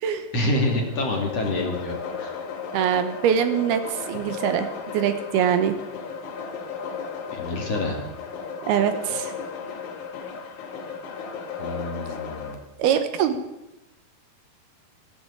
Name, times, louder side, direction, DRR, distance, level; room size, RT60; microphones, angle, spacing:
voice 1, 0.3-2.3 7.3-8.0 11.6-12.6, left 1 dB, 45° left, 2 dB, 3.1 m, -27 dB
sound 1, 0.5-12.6, left 6 dB, 65° left, 3.3 m, -35 dB
voice 2, 2.7-5.8 8.7-9.3 12.8-13.4, right 9 dB, 80° right, 9 dB, 3.0 m, -23 dB
16.5 x 11.0 x 8.1 m, 0.96 s
omnidirectional pair, 4.6 m